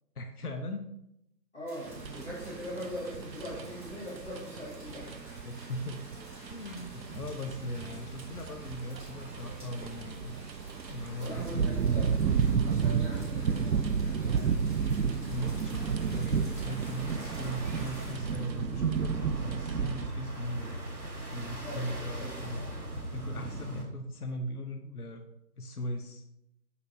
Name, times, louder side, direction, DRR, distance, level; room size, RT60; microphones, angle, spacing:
voice 1, 0.2-0.9 5.4-6.0 6.5-10.3 10.9-11.8 15.3-20.8 21.3-22.7 23.1-25.2 25.6-26.2, equal, 65° left, 5 dB, 0.7 m, -39 dB
voice 2, 1.5-5.4 11.2-12.2 12.6-14.5 21.6-22.4, left 1 dB, 45° left, -8 dB, 2.2 m, -41 dB
sound 1, 1.7-18.1, equal, 30° right, 1.9 m, -51 dB
sound 2, 1.9-20.1, right 6 dB, 90° right, 0.6 m, -32 dB
sound 3, 15.4-23.8, right 1 dB, 60° right, 1.5 m, -40 dB
6.8 x 6.1 x 2.8 m, 0.81 s
figure-of-eight pair, 170°, 50 cm